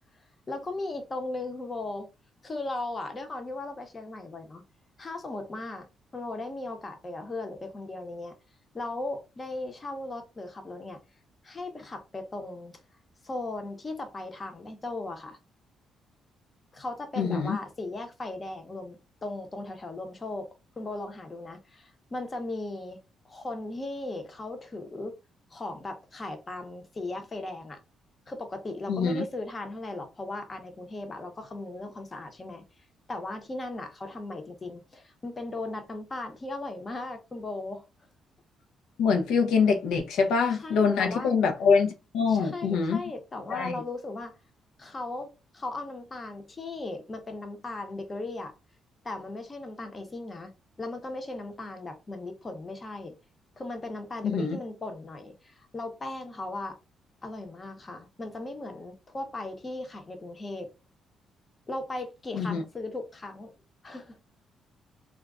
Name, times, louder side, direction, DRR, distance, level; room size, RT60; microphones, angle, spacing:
voice 1, 0.5-2.1 2.4-4.6 5.0-5.9 6.1-8.3 8.7-11.0 11.4-12.7 13.2-15.4 16.7-20.5 20.8-23.0 23.2-25.2 25.5-27.8 28.3-32.6 33.1-37.8 40.6-41.3 42.3-44.3 44.8-48.5 49.0-50.5 50.8-53.1 53.6-56.8 57.2-60.7 61.7-63.5 63.8-64.2, left 2 dB, 30° left, 0.7 m, -37 dB
voice 2, 17.2-17.6 28.9-29.2 39.0-43.0 43.5-43.7 54.2-54.6 62.4-62.6, left 5 dB, 85° left, 0.5 m, -24 dB
2.3 x 2.1 x 3.6 m
cardioid pair, 90°, 0 cm